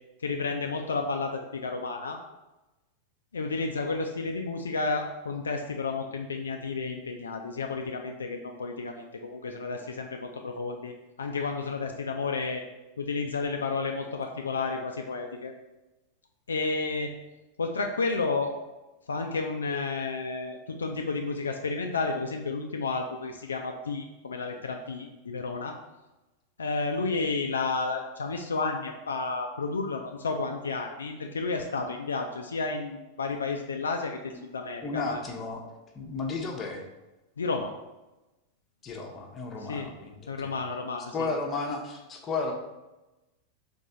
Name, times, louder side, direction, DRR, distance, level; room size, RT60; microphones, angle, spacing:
voice 1, 0.2-2.2 3.3-10.9 11.2-12.6 13.0-15.5 16.5-17.1 17.6-18.5 19.1-25.8 26.6-35.2 37.4-37.7 39.6-39.9 40.3-41.3, left 4 dB, 70° left, 3 dB, 0.3 m, -31 dB
voice 2, 34.8-35.6 35.9-36.9 38.8-40.6 41.1-42.5, left 3 dB, 25° left, 1 dB, 0.7 m, -33 dB
4.2 x 2.6 x 3.7 m, 1.0 s
figure-of-eight pair, 90°, 0 cm